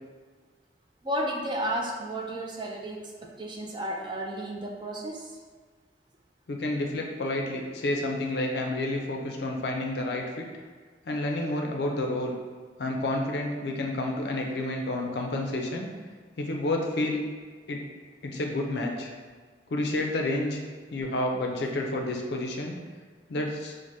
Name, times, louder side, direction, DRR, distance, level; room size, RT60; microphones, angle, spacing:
voice 1, 1.0-5.4 21.1-21.2, right 1 dB, 25° right, -1 dB, 0.4 m, -33 dB
voice 2, 6.5-10.5 11.1-12.4 12.8-15.9 16.4-17.2 17.7-17.8 18.2-19.1 19.7-20.6 20.9-22.8 23.3-23.8, left 1 dB, 65° left, 1 dB, 0.4 m, -30 dB
4.6 x 2.1 x 2.7 m, 1.5 s
head